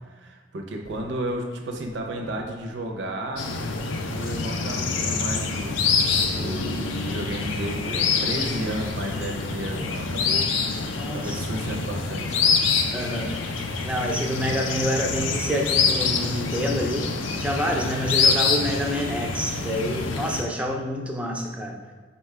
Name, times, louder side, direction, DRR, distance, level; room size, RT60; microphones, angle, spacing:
voice 1, 0.0-3.4 4.0-12.5, right 1 dB, 65° right, 2 dB, 0.5 m, -33 dB
sound 1, 0.8-11.8, equal, 40° left, 0.6 m, -45 dB
sound 2, 3.4-20.4, left 4 dB, 85° left, 0.4 m, -26 dB
voice 2, 11.0-11.4 12.9-13.3 13.8-17.1 17.4-21.8, equal, 5° right, 1 dB, 0.4 m, -27 dB
4.1 x 2.2 x 4.5 m, 1.5 s
head